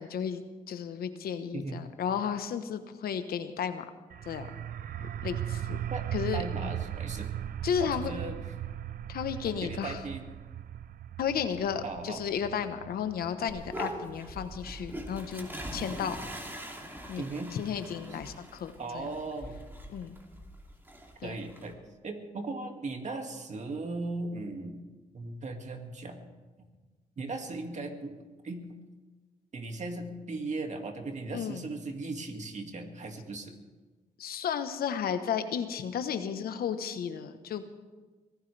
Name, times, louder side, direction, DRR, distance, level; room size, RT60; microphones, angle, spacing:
voice 1, 0.0-3.8 4.3-4.5 5.2-5.8 6.1-6.8 7.6-8.1 9.1-10.0 11.2-16.2 17.1-17.2 17.5-19.1 19.9-20.2 21.2-21.4 31.3-31.6 34.2-37.7, left 8 dB, 80° left, 9 dB, 1.1 m, -33 dB
sound 1, 4.1-15.6, right 11 dB, 70° right, 0.5 m, -38 dB
voice 2, 6.3-7.3 7.8-8.4 9.6-10.2 11.8-12.2 17.2-17.5 18.8-19.6 21.2-21.8 22.0-24.8 25.1-26.2 27.2-28.2 28.4-28.6 29.5-33.5, right 3 dB, 50° right, 4 dB, 2.3 m, -37 dB
sound 2, 13.5-21.7, right 1 dB, 15° right, 2.9 m, -42 dB
23.5 x 16.0 x 3.4 m, 1.3 s
cardioid pair, 75°, 15 cm